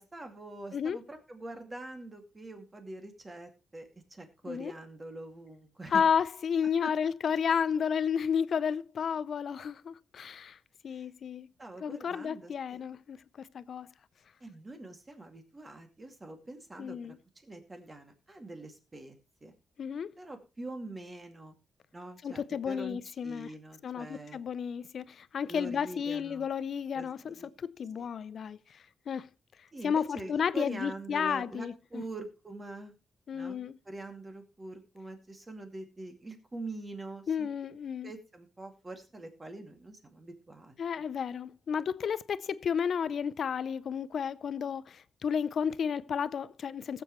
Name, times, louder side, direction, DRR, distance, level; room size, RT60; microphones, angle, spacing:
voice 1, 0.0-6.0 6.8-6.9 10.9-11.0 11.6-12.8 14.4-17.1 17.4-19.5 20.2-21.5 21.9-24.4 25.5-26.5 26.9-27.5 28.0-28.1 29.7-32.9 33.3-37.5 38.0-40.8, right 2 dB, 20° right, 2.3 m, -44 dB
voice 2, 5.9-10.6 10.8-11.5 11.8-13.9 16.8-17.2 19.8-20.1 22.2-23.5 23.8-28.6 29.1-29.3 29.8-32.0 33.3-33.8 37.3-38.1 40.8-47.0, left 7 dB, 60° left, 0.5 m, -32 dB
19.5 x 7.7 x 3.1 m
wide cardioid pair, 140°, 0 cm